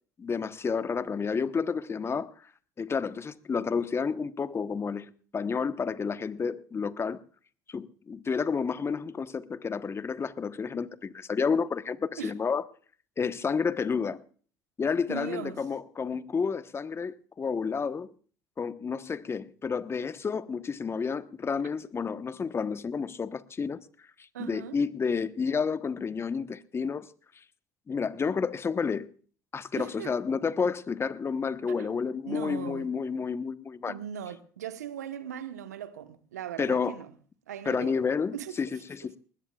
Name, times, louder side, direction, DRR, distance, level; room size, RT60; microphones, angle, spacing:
voice 1, 0.2-2.3 2.8-7.2 7.7-12.6 13.2-14.2 14.8-18.1 18.6-23.8 24.4-27.1 27.9-29.1 29.5-33.9 36.6-37.0 37.6-39.2, left 5 dB, 30° left, 1.1 m, -30 dB
voice 2, 15.1-15.6 21.6-21.7 24.3-24.8 29.8-30.2 31.7-31.9 32.3-32.9 33.9-37.1 37.5-38.0 38.3-38.6, right 9 dB, 85° right, 1.2 m, -39 dB
21.0 x 19.5 x 2.4 m
hypercardioid pair, 65°, 9 cm